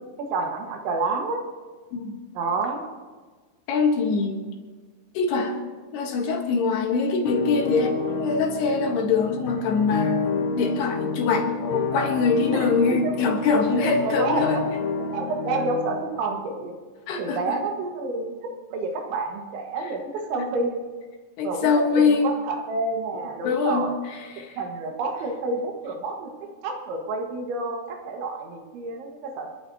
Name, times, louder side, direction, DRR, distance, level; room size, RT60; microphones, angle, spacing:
voice 1, 0.3-1.4 2.4-2.9 12.5-13.1 13.7-14.7 15.1-16.8 17.2-18.3 18.7-20.0 20.3-20.8 21.4-24.0 24.6-26.3 26.6-29.5, right 3 dB, 85° right, 2 dB, 3.9 m, -29 dB
voice 2, 3.7-4.4 5.1-5.6 5.9-10.2 10.5-14.6 17.1-17.6 20.4-20.5 21.4-22.3 23.4-23.9 24.4-24.5, left 4 dB, 70° left, 3 dB, 3.1 m, -23 dB
sound 1, 7.3-16.2, left 4 dB, 90° left, 3.4 m, -30 dB
28.5 x 11.0 x 2.8 m, 1.4 s
omnidirectional pair, 5.2 m